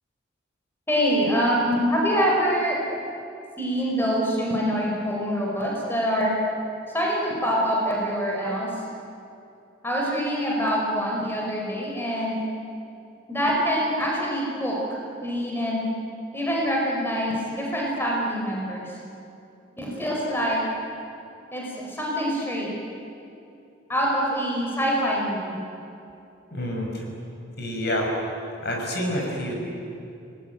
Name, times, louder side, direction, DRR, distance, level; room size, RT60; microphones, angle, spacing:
voice 1, 0.9-2.8 3.6-6.3 6.9-8.7 9.8-12.4 13.3-14.8 15.2-15.8 16.3-18.9 19.8-20.6 21.5-22.7 23.9-25.6, equal, 10° left, -3 dB, 4.9 m, -25 dB
voice 2, 26.5-27.0 27.6-28.1 28.6-29.5, left 1 dB, 55° left, 0 dB, 5.8 m, -28 dB
29.5 x 19.5 x 9.4 m, 2.7 s
head